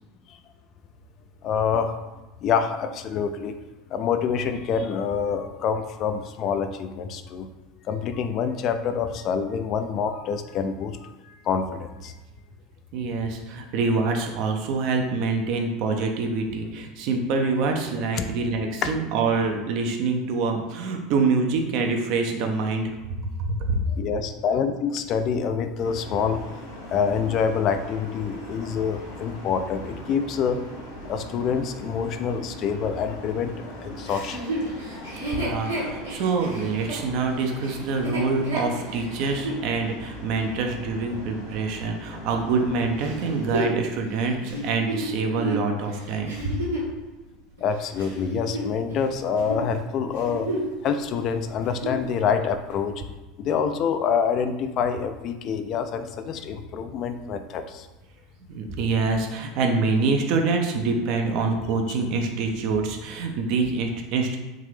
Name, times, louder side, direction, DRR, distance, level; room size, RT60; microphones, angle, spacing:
voice 1, 1.4-1.9 2.4-3.6 3.9-7.5 7.9-11.0 11.3-12.1 18.1-18.2 18.8-18.9 23.9-26.4 26.9-30.6 31.0-34.4 34.9-35.1 47.6-50.5 50.8-53.0 53.4-57.9, left 6 dB, 45° left, 8 dB, 0.3 m, -26 dB
voice 2, 12.9-22.9 23.4-23.8 35.3-46.6 58.5-64.4, right 4 dB, 50° right, 3 dB, 0.5 m, -25 dB
sound 1, 25.8-43.6, equal, 65° left, 1.1 m, -40 dB
Chuckle chortle, 34.0-39.6 40.2-40.3 43.0-47.0 47.6-49.1 49.3-49.6 50.1-50.8 51.1-51.2 51.6-52.1 52.7-52.8, right 1 dB, 80° right, 1.2 m, -31 dB
3.6 x 2.7 x 3.2 m, 1.1 s
figure-of-eight pair, 75°, 0 cm